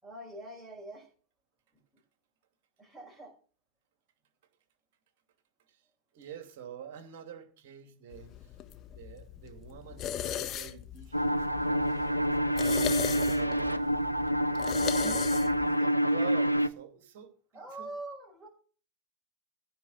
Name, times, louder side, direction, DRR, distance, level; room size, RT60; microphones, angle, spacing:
voice 1, 0.0-1.1 2.8-3.3 17.5-18.5, right 2 dB, 5° right, -1 dB, 5.2 m, -44 dB
voice 2, 6.1-8.5 8.9-13.8 15.0-17.9, right 8 dB, 50° right, 7 dB, 2.7 m, -46 dB
sound 1, 8.1-15.7, left 10 dB, 30° left, 1.2 m, -38 dB
sound 2, 11.1-16.7, equal, 90° right, 0.7 m, -27 dB
15.5 x 5.2 x 7.2 m, 0.40 s
figure-of-eight pair, 90°, 0 cm